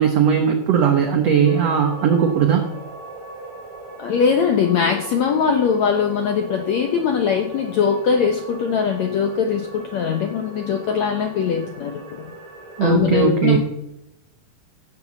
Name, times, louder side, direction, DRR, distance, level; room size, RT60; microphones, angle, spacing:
voice 1, 0.0-2.7 12.8-13.6, right 7 dB, 75° right, 5 dB, 1.5 m, -18 dB
sound 1, 1.4-12.9, right 2 dB, 50° right, 3.7 m, -39 dB
voice 2, 4.0-12.0 12.8-13.6, left 6 dB, 75° left, 4 dB, 1.6 m, -21 dB
15.5 x 6.9 x 7.2 m, 0.87 s
omnidirectional pair, 4.5 m